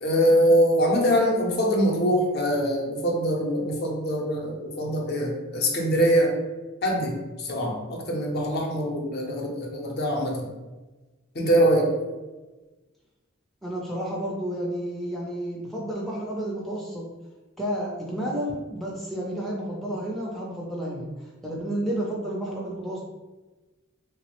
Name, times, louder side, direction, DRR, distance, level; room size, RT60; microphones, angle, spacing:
voice 1, 0.0-6.4 6.8-10.4 11.3-11.9, equal, 50° left, 0 dB, 0.5 m, -23 dB
voice 2, 13.6-17.0 17.6-21.1 21.4-23.0, right 1 dB, ahead, -5 dB, 0.4 m, -31 dB
3.1 x 2.0 x 2.9 m, 1.2 s
head